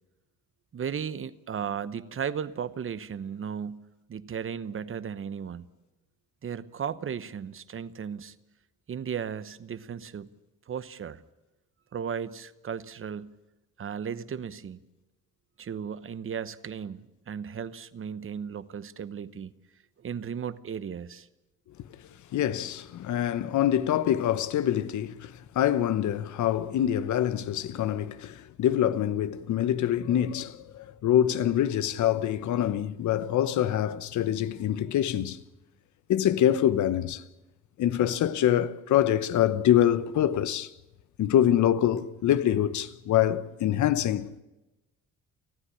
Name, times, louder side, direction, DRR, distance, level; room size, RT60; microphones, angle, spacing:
voice 1, 0.7-5.7 6.4-8.3 8.9-10.3 10.7-11.2 11.9-13.3 13.8-14.8 15.6-19.5 20.0-21.3, right 7 dB, 45° right, 1.0 m, -35 dB
voice 2, 22.3-35.4 36.1-37.2 37.8-40.7 41.2-44.4, left 11 dB, 75° left, 1.1 m, -25 dB
29.5 x 9.9 x 10.0 m
cardioid pair, 90°, 30 cm